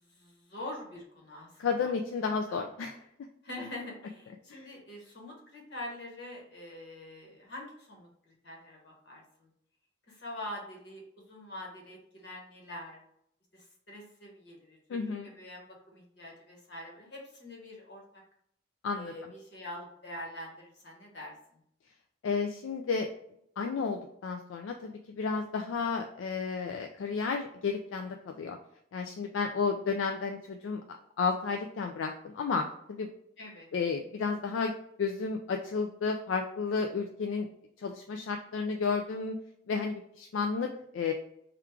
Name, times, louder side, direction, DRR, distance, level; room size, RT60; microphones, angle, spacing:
voice 1, 0.1-1.9 2.5-2.6 3.4-9.5 10.1-13.0 13.5-18.0 18.9-21.6 33.4-33.7, left 1 dB, 60° left, -1 dB, 1.2 m, -45 dB
voice 2, 1.6-3.0 4.5-4.7 14.9-15.3 18.8-19.1 22.2-23.1 23.6-28.6 28.9-33.1 33.7-34.7 35.0-37.5 37.8-39.4 39.7-41.1, left 5 dB, 75° left, 4 dB, 0.3 m, -32 dB
3.5 x 2.4 x 4.4 m, 0.72 s
head